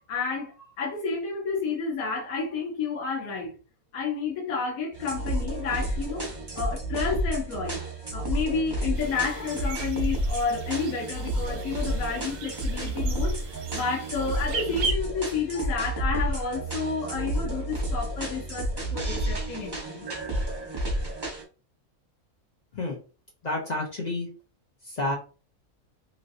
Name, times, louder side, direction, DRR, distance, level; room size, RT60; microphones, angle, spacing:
voice 1, 0.1-3.5 3.9-7.8 8.1-20.1, left 5 dB, 75° left, 1.1 m, -30 dB
sound 1, 4.9-21.4, right 1 dB, 35° right, 0.4 m, -31 dB
sound 2, 8.9-14.9, right 5 dB, 70° right, 0.9 m, -37 dB
voice 2, 23.4-24.3 24.8-25.1, left 2 dB, 45° left, 0.5 m, -29 dB
3.0 x 2.6 x 2.6 m
omnidirectional pair, 1.6 m